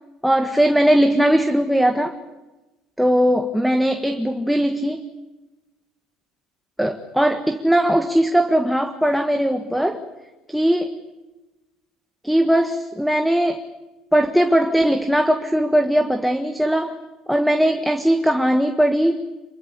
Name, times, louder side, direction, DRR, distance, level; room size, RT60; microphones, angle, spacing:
voice 1, 0.2-2.2 3.0-5.1 6.8-10.0 10.5-10.9 12.2-13.6 14.1-16.9 17.3-19.2, equal, ahead, 6 dB, 1.6 m, -19 dB
28.0 x 22.5 x 8.4 m, 1.1 s
cardioid pair, 135°, 0 cm